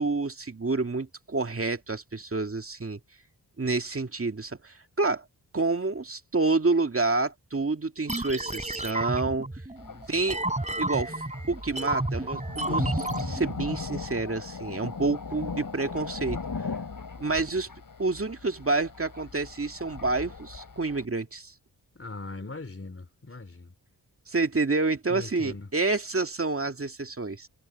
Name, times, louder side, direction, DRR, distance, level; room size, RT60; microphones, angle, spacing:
voice 1, 0.0-3.0 3.6-5.2 5.5-9.5 10.1-10.4 10.8-11.1 11.5-16.4 17.2-17.7 18.0-21.5 24.3-27.5, right 3 dB, 35° right, 2.2 m, -28 dB
sound 1, 8.1-13.8, right 2 dB, 20° right, 3.9 m, -31 dB
Thunder, 9.8-21.1, left 4 dB, 55° left, 4.9 m, -38 dB
voice 2, 9.9-10.2 22.0-23.7 25.1-25.7, left 3 dB, 35° left, 3.8 m, -40 dB
cardioid pair, 55°, 39 cm